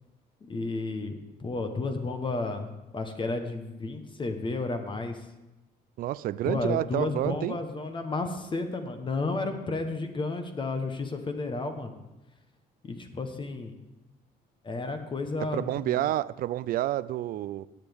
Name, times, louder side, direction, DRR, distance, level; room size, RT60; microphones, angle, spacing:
voice 1, 0.4-5.2 6.4-12.0 12.8-13.7 14.6-16.1, left 3 dB, 30° left, 6 dB, 1.1 m, -32 dB
voice 2, 6.0-7.6 15.4-17.7, right 14 dB, 60° right, 19 dB, 0.4 m, -29 dB
17.0 x 8.1 x 3.5 m, 1.0 s
cardioid pair, 110°, 17 cm